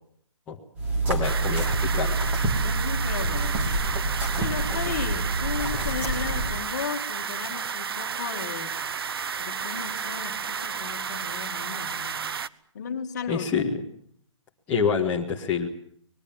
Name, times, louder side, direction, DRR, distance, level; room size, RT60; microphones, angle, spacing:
sound 1, 0.8-6.6, right 2 dB, 10° right, 2.7 m, -27 dB
voice 1, 1.0-2.5 13.3-13.7 14.7-15.7, left 6 dB, 10° left, -4 dB, 1.5 m, -27 dB
sound 2, 1.2-12.5, right 6 dB, 50° right, 0.9 m, -32 dB
voice 2, 2.6-3.9 4.4-8.8 9.4-12.2 12.7-13.5, left 6 dB, 35° left, 6 dB, 2.3 m, -35 dB
26.0 x 21.5 x 7.4 m, 0.64 s
hypercardioid pair, 180°, 17 cm